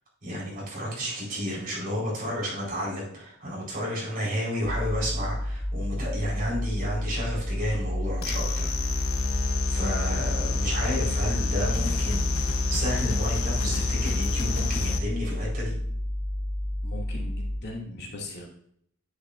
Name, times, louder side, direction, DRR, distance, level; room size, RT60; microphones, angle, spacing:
voice 1, 0.2-9.0 9.7-12.4 12.7-15.7, equal, 45° right, -5 dB, 4.2 m, -31 dB
sound 1, 4.6-17.6, left 1 dB, 30° left, 1.2 m, -30 dB
sound 2, 8.2-15.0, left 3 dB, 85° left, 0.9 m, -28 dB
voice 2, 16.8-18.5, left 2 dB, 55° left, -3 dB, 2.3 m, -39 dB
9.8 x 9.6 x 2.5 m, 0.66 s
head